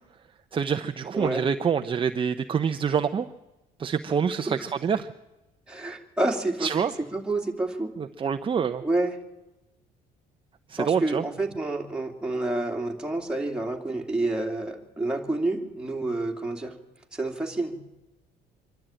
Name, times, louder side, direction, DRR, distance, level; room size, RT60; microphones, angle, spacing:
voice 1, 0.5-3.3 3.8-5.1 6.6-6.9 8.0-8.8 10.7-11.2, right 6 dB, 30° right, 8 dB, 0.7 m, -26 dB
voice 2, 1.1-1.4 4.5-4.6 5.7-6.7 7.0-7.9 8.8-9.1 10.8-16.8 17.1-17.8, right 2 dB, 5° right, 1 dB, 2.7 m, -28 dB
25.0 x 12.5 x 9.0 m, 1.0 s
cardioid pair, 110°, 17 cm